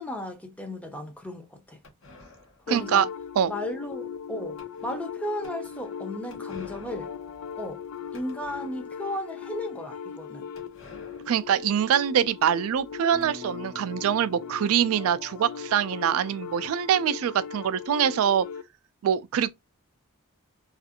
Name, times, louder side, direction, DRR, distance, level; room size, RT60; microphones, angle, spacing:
voice 1, 0.0-1.8 2.7-3.0 3.5-7.1 7.6-7.8 8.1-10.5, left 1 dB, 5° left, 0.5 m, -35 dB
sound 1, 1.8-9.1 9.5-9.6 9.8-9.9 10.6-13.3, left 2 dB, 60° left, 0.9 m, -53 dB
sound 2, 2.7-18.7, left 7 dB, 90° left, 0.3 m, -39 dB
voice 2, 2.7-3.1 3.4-3.5 11.3-18.5 19.0-19.5, right 9 dB, 70° right, 0.3 m, -24 dB
sound 3, 13.1-16.9, equal, 20° left, 0.9 m, -49 dB
2.5 x 2.4 x 2.7 m
head